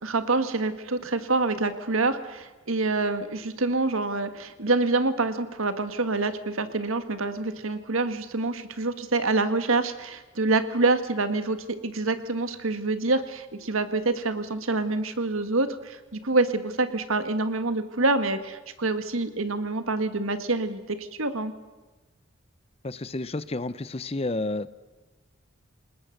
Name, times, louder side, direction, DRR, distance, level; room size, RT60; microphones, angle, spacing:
voice 1, 0.0-21.5, right 3 dB, 80° right, 10 dB, 1.7 m, -26 dB
voice 2, 22.8-24.7, left 2 dB, 30° left, 16 dB, 0.7 m, -30 dB
28.0 x 20.0 x 6.6 m, 1.2 s
head